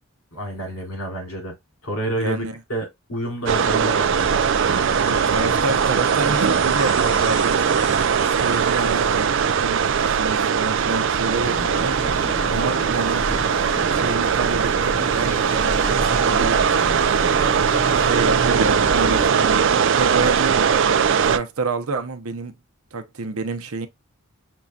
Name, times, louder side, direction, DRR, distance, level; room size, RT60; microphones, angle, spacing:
voice 1, 0.3-1.5 1.8-4.2, right 1 dB, 80° left, 3.1 m, -28 dB
voice 2, 2.2-2.6 4.9-7.8 8.2-12.0 12.5-13.2 13.9-16.9 18.0-22.5 22.9-23.9, right 3 dB, 75° right, 0.7 m, -28 dB
sound 1, 3.5-21.4, right 7 dB, 55° right, 0.4 m, -20 dB
sound 2, 4.2-9.2, left 2 dB, 50° left, 3.0 m, -36 dB
sound 3, 11.4-19.3, equal, 10° left, 0.6 m, -31 dB
6.2 x 2.8 x 2.3 m
head